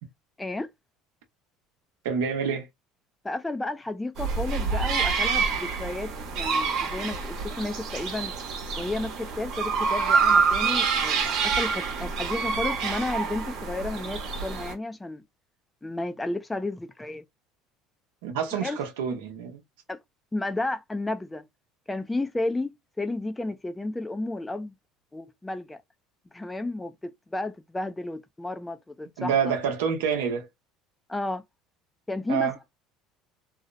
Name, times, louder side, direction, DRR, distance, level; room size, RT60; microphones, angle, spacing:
voice 1, 2.0-2.7 18.2-19.6 29.2-30.5 32.3-32.5, right 7 dB, 90° right, 0.8 m, -27 dB
voice 2, 3.2-8.3 8.8-15.2 15.8-17.2 18.5-18.8 19.9-20.0 20.3-21.5 21.9-24.7 25.1-25.8 26.3-29.3 31.1-31.4 32.1-32.5, left 2 dB, 10° left, 0.3 m, -32 dB
sound 1, 4.2-14.7, right 5 dB, 60° right, 0.9 m, -27 dB
2.7 x 2.0 x 2.5 m
supercardioid pair, 95°, 0 cm